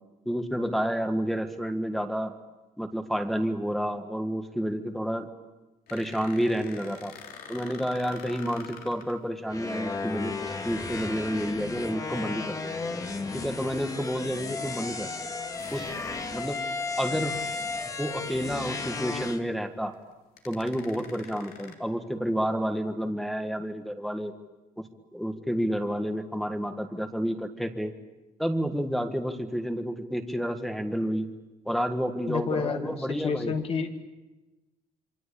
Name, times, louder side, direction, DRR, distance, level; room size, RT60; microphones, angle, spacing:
voice 1, 0.2-2.3 2.8-5.3 5.9-7.1 7.5-12.6 13.3-15.1 15.7-15.9 16.3-16.6 17.0-17.4 18.0-19.9 20.4-24.3 24.8-24.9 25.1-27.9 28.4-31.3 31.6-33.5, equal, ahead, 5 dB, 1.7 m, -30 dB
sound 1, 5.9-9.2 11.3-11.5 13.2-13.3 14.2-14.3 15.6-17.4 17.9-18.0 18.3-18.4 19.9-20.0 20.4-21.7, left 6 dB, 85° left, 3.5 m, -47 dB
sound 2, 9.5-19.4, left 4 dB, 25° left, 1.8 m, -34 dB
voice 2, 32.3-33.9, left 5 dB, 40° left, 5 dB, 2.3 m, -30 dB
27.5 x 25.0 x 8.5 m, 1.1 s
cardioid pair, 160°, 15 cm